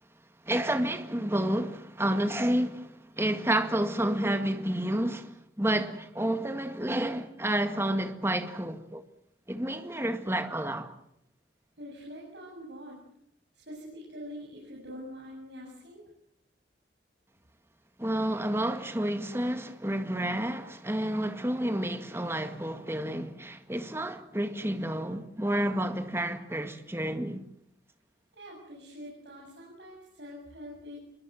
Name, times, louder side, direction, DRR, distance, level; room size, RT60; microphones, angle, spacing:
voice 1, 0.5-9.0 9.5-10.9 18.0-27.4, right 1 dB, 15° right, 1.9 m, -30 dB
voice 2, 11.8-13.0 13.6-16.0 28.3-31.0, equal, 75° right, 7.6 m, -44 dB
27.0 x 22.5 x 7.8 m
head